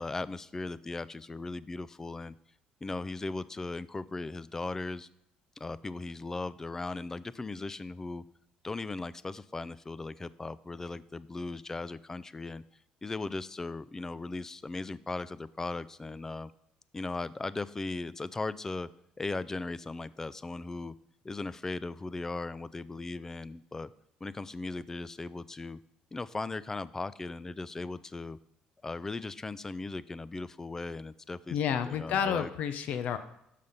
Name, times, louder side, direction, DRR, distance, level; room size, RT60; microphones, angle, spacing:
voice 1, 0.0-2.3 2.8-5.1 5.6-8.2 8.6-12.6 13.0-16.5 16.9-18.9 19.2-20.9 21.2-23.9 24.2-25.8 26.1-28.4 28.8-31.6 31.9-32.5, left 3 dB, 20° left, 18 dB, 0.3 m, -38 dB
voice 2, 31.5-33.2, left 8 dB, 70° left, 10 dB, 0.6 m, -30 dB
6.5 x 5.7 x 5.4 m, 0.77 s
cardioid pair, 105°, 3 cm